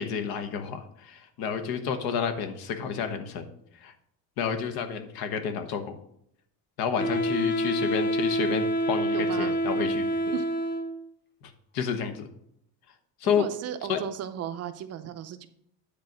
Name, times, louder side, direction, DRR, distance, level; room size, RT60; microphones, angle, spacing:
voice 1, 0.0-3.5 3.8-3.9 4.4-6.0 6.8-10.0 11.7-12.3 13.2-13.4 13.9-14.0, left 7 dB, 65° left, 8 dB, 1.3 m, -30 dB
Wind instrument woodwind instrument, 7.0-11.1, right 1 dB, 25° left, 0.9 m, -27 dB
voice 2, 9.1-9.6 10.3-10.5 13.2-15.5, right 10 dB, 40° right, 10 dB, 0.6 m, -35 dB
9.9 x 4.0 x 6.1 m, 0.71 s
cardioid pair, 160°, 40 cm